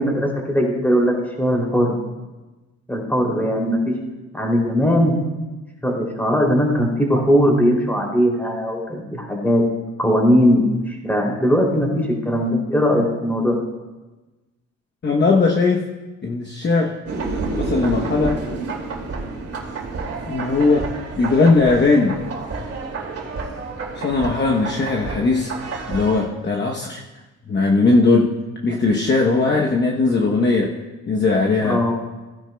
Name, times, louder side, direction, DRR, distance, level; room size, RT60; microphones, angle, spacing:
voice 1, 0.0-2.0 2.9-3.9 4.3-5.2 5.8-9.6 10.0-13.6 31.6-31.9, equal, 5° left, -1 dB, 3.0 m, -19 dB
voice 2, 15.0-15.9 16.2-17.0 17.6-18.4 20.3-22.2 23.9-27.0 27.5-28.3 28.6-30.8 31.1-31.8, left 3 dB, 35° left, 0 dB, 1.0 m, -19 dB
sound 1, 17.1-26.3, right 3 dB, 50° right, 2.4 m, -29 dB
15.5 x 10.5 x 2.3 m, 1.2 s
cardioid pair, 90°, 30 cm